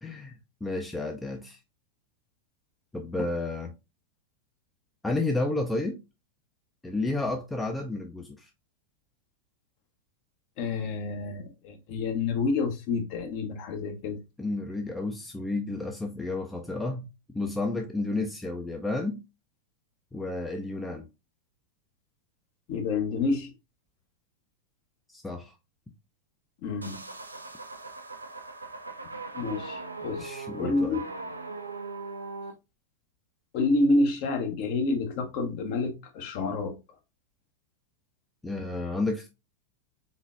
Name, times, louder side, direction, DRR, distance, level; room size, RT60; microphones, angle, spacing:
voice 1, 0.0-0.3 0.6-1.6 2.9-3.7 5.0-6.0 6.8-8.5 14.4-19.2 20.1-21.1 25.1-25.5 30.1-31.0 38.4-39.3, left 2 dB, 10° left, 0.5 m, -31 dB
voice 2, 10.6-14.2 22.7-23.5 26.6-27.0 29.3-30.3 30.6-31.0 33.5-36.8, left 3 dB, 45° left, 0.9 m, -28 dB
sound 1, 26.8-32.5, right 3 dB, 80° right, 0.5 m, -39 dB
3.9 x 3.9 x 2.4 m
figure-of-eight pair, 90°, 0 cm